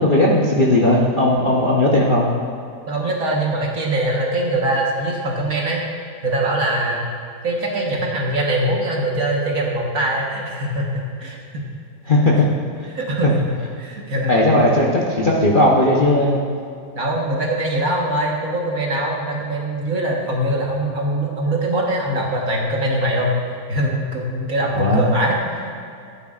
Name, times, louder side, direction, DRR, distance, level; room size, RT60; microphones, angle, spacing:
voice 1, 0.0-2.3 12.1-12.5 14.2-16.4 24.7-25.0, left 1 dB, 35° left, -4 dB, 0.9 m, -16 dB
voice 2, 2.9-5.8 6.2-7.0 7.4-10.9 11.2-11.4 12.9-14.3 16.9-23.3 23.7-25.7, right 1 dB, 55° right, -2 dB, 1.7 m, -22 dB
14.5 x 9.2 x 2.5 m, 2.4 s
omnidirectional pair, 1.8 m